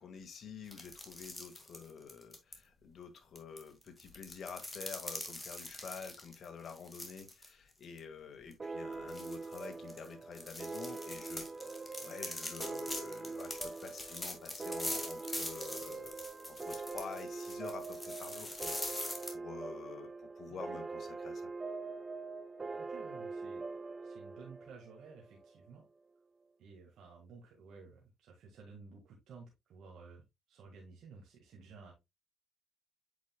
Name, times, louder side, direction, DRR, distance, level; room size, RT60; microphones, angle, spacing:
voice 1, 0.0-16.2 16.5-21.4, left 6 dB, 60° left, 1.8 m, -49 dB
sound 1, 0.7-2.5 3.4-7.5 7.8-8.0 8.5-8.6 9.1-19.3, left 1 dB, 10° left, 1.9 m, -43 dB
sound 2, 8.6-25.7, right 3 dB, 30° right, 0.5 m, -43 dB
voice 2, 22.8-23.6 24.0-25.9 26.6-31.9, right 4 dB, 75° right, 1.8 m, -54 dB
8.2 x 5.1 x 2.3 m
cardioid pair, 90°, 0 cm